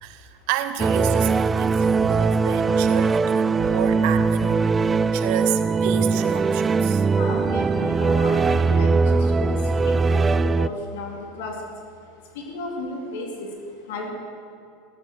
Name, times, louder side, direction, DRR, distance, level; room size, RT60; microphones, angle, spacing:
voice 1, 0.0-4.7 5.1-7.0, right 10 dB, 65° right, 10 dB, 1.2 m, -30 dB
sound 1, 0.8-10.7, right 4 dB, 25° right, 0.4 m, -20 dB
voice 2, 7.1-11.6 12.4-13.5 13.9-14.1, left 3 dB, 70° left, 1 dB, 3.5 m, -33 dB
16.0 x 13.5 x 6.4 m, 2.6 s
hypercardioid pair, 85°, 0 cm